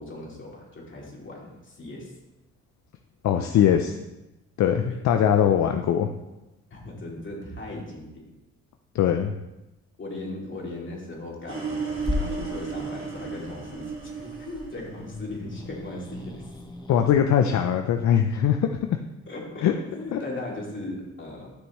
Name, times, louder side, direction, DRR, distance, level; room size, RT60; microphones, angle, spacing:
voice 1, 0.0-2.1 4.8-5.0 5.3-5.5 6.7-8.2 10.0-16.5 19.3-21.5, left 2 dB, 40° left, -2 dB, 2.8 m, -38 dB
voice 2, 3.2-4.0 4.6-6.1 8.9-9.3 16.9-18.9 19.6-19.7 20.1-20.2, left 9 dB, 65° left, 6 dB, 0.6 m, -21 dB
sound 1, 11.5-15.6, right 5 dB, 45° right, 2.0 m, -34 dB
Growling / Hiss, 12.0-17.2, left 2 dB, 15° left, 1.0 m, -37 dB
11.5 x 6.2 x 3.1 m, 1.0 s
cardioid pair, 90°, 30 cm